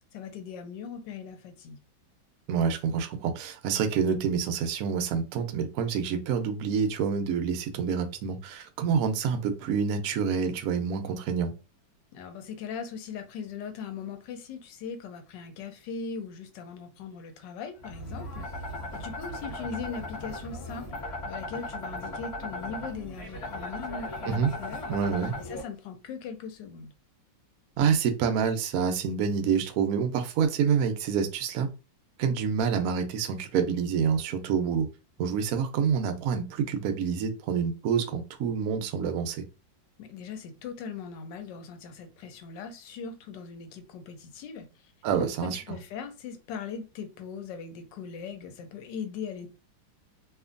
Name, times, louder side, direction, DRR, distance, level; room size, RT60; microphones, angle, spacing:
voice 1, 0.1-1.8 12.1-20.9 21.2-24.9 25.5-26.9 40.0-44.7 45.1-49.5, left 6 dB, 75° left, 1.2 m, -39 dB
voice 2, 2.5-11.5 24.3-24.5 24.9-25.3 27.8-31.7 32.2-34.9 35.2-39.4 45.0-45.6, right 6 dB, 75° right, 0.8 m, -27 dB
sound 1, 17.8-25.6, left 1 dB, 45° left, 0.9 m, -37 dB
2.8 x 2.5 x 2.5 m
omnidirectional pair, 2.1 m